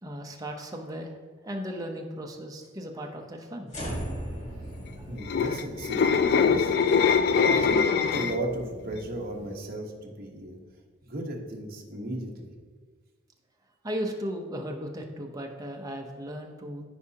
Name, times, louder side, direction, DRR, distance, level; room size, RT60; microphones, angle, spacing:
voice 1, 0.0-1.1 1.4-3.7 5.0-5.5 7.6-7.7 13.8-16.8, equal, 20° right, 2 dB, 0.7 m, -36 dB
sound 1, 3.7-10.0, equal, 35° left, 1.7 m, -40 dB
sound 2, 5.1-8.5 8.9-9.2, left 6 dB, 50° left, 0.3 m, -23 dB
voice 2, 5.1-6.7 7.3-10.6 11.0-12.5, right 1 dB, 45° right, 0 dB, 1.1 m, -35 dB
14.0 x 4.9 x 2.8 m, 1.5 s
head